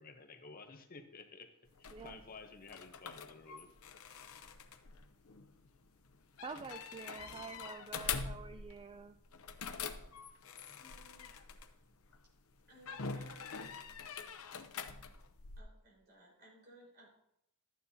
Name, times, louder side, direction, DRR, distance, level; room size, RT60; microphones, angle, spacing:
voice 1, 0.0-1.5 1.8-3.7, left 4 dB, 40° left, 6 dB, 0.8 m, -53 dB
sound 1, 1.7-12.2 12.8-15.6, left 6 dB, 90° left, 0.7 m, -45 dB
voice 2, 6.4-9.2, right 4 dB, 25° right, 9 dB, 0.3 m, -47 dB
voice 3, 10.8-11.3 12.1-12.2 12.7-13.6 15.6-17.1, right 1 dB, 50° right, -3 dB, 4.4 m, -60 dB
12.5 x 9.4 x 2.8 m, 0.80 s
head